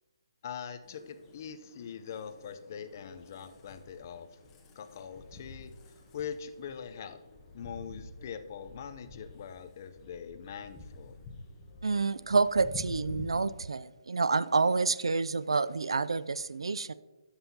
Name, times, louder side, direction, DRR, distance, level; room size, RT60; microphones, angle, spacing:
voice 1, 0.4-4.3 4.8-5.7 6.1-7.2 7.5-11.2, left 7 dB, 35° left, 10 dB, 0.6 m, -42 dB
sound 1, 0.8-13.2, left 3 dB, 15° left, 0.9 m, -49 dB
voice 2, 11.8-16.9, right 4 dB, 85° right, 16 dB, 0.3 m, -28 dB
13.0 x 5.5 x 2.8 m, 1.1 s
hypercardioid pair, 160°, 3 cm